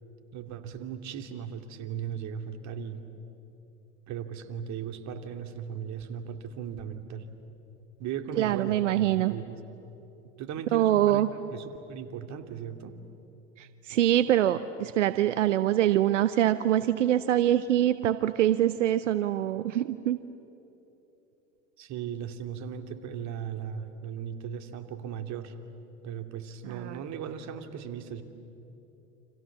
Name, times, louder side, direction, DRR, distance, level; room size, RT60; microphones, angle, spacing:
voice 1, 0.3-3.0 4.1-7.3 8.0-9.6 10.4-11.2 11.5-13.0 21.8-25.5 26.0-28.2, right 8 dB, 50° right, 7 dB, 2.5 m, -37 dB
voice 2, 8.4-9.3 10.7-11.3 13.6-20.2 26.6-27.0, right 12 dB, 90° right, 14 dB, 0.7 m, -24 dB
29.5 x 27.0 x 7.2 m, 3.0 s
hypercardioid pair, 80°, 36 cm